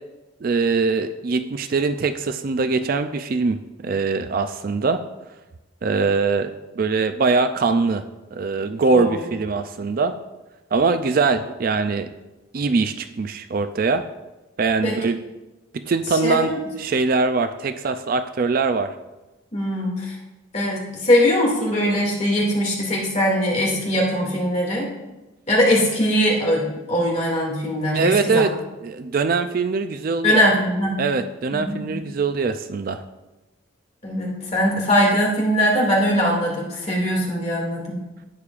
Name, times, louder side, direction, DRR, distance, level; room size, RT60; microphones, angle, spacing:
voice 1, 0.4-3.6 3.8-5.0 5.8-8.0 8.3-10.1 10.7-12.1 12.5-14.0 14.6-15.2 15.7-16.5 16.8-18.9 27.9-28.5 28.8-30.5 31.0-33.0, right 4 dB, 45° right, 10 dB, 0.3 m, -22 dB
voice 2, 8.9-9.2 14.8-15.0 16.1-16.6 19.5-20.1 20.5-24.9 25.5-28.5 30.2-31.0 31.5-32.0 34.0-38.0, equal, 30° left, -3 dB, 2.3 m, -21 dB
11.5 x 8.5 x 2.5 m, 1.1 s
head